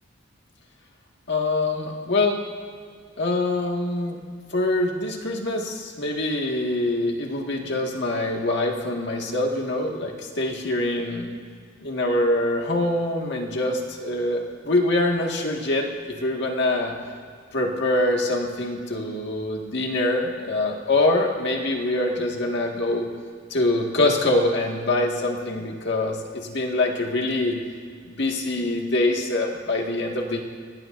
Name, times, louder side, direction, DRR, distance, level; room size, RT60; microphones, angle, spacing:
voice 1, 1.3-2.4 3.2-4.2 4.5-11.3 11.8-16.9 17.5-23.1 23.5-27.6 28.1-30.4, left 2 dB, 60° left, 1 dB, 1.9 m, -24 dB
24.0 x 18.5 x 2.6 m, 2.1 s
head